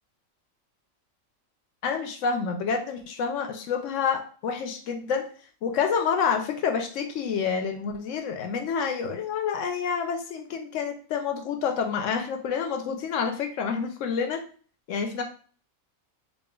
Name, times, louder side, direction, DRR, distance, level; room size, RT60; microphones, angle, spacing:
voice 1, 1.8-5.3 5.6-14.4 14.9-15.2, left 6 dB, 70° left, 5 dB, 0.8 m, -28 dB
5.3 x 2.4 x 2.3 m, 0.42 s
omnidirectional pair, 1.5 m